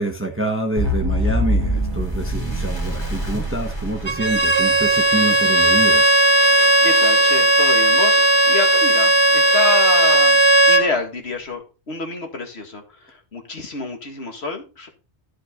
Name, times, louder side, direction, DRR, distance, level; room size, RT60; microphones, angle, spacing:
voice 1, 0.0-6.2, right 2 dB, 10° right, 3 dB, 1.2 m, -26 dB
sound 1, 0.8-4.9, equal, 20° left, 2.5 m, -24 dB
Bowed string instrument, 4.1-10.9, right 1 dB, 30° right, 0.7 m, -16 dB
voice 2, 6.8-8.2 8.5-10.4 10.7-14.9, left 3 dB, 65° left, 4 dB, 2.2 m, -27 dB
12.5 x 5.8 x 3.8 m, 0.32 s
omnidirectional pair, 1.2 m